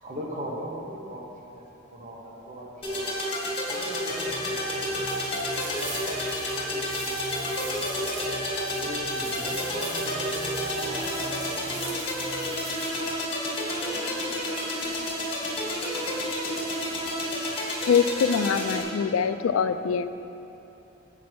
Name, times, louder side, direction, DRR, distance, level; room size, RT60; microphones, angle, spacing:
voice 1, 0.0-1.2 1.5-1.6 1.9-3.1 3.7-8.2 8.6-12.3, equal, 40° right, -2 dB, 1.2 m, -40 dB
sound 1, 2.8-18.8, left 1 dB, 30° left, 1.8 m, -30 dB
sound 2, 4.1-12.5, right 1 dB, ahead, 0.9 m, -43 dB
sound 3, 5.0-13.0, right 3 dB, 65° right, 1.2 m, -42 dB
voice 2, 13.6-16.2, equal, 80° right, -4 dB, 1.6 m, -46 dB
voice 3, 17.8-20.1, left 6 dB, 85° left, 11 dB, 0.3 m, -24 dB
8.2 x 6.2 x 4.6 m, 2.9 s
head